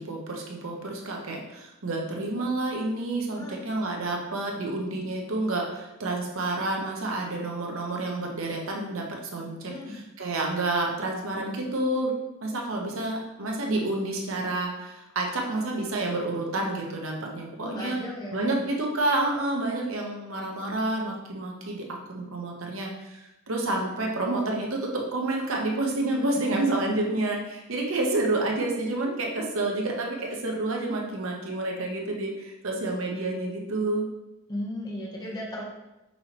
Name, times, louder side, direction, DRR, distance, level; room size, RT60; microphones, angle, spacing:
voice 1, 0.0-9.0 9.3-12.1 12.4-18.0 18.3-34.0, right 2 dB, 70° right, 0 dB, 0.8 m, -29 dB
voice 2, 9.6-10.0 17.6-18.6 34.5-35.6, left 1 dB, 20° left, -3 dB, 0.8 m, -36 dB
5.5 x 3.0 x 2.9 m, 0.97 s
head